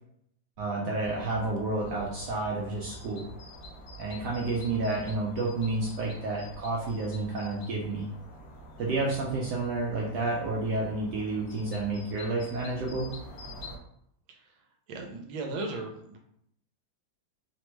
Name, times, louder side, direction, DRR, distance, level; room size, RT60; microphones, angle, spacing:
voice 1, 0.6-3.3 4.0-8.1 8.8-13.1, right 2 dB, 70° right, -3 dB, 1.1 m, -30 dB
sound 1, 0.9-13.8, equal, 80° left, 0.7 m, -47 dB
voice 2, 14.9-16.2, right 2 dB, 85° right, 3 dB, 1.4 m, -36 dB
3.3 x 2.1 x 3.0 m, 0.73 s
omnidirectional pair, 2.1 m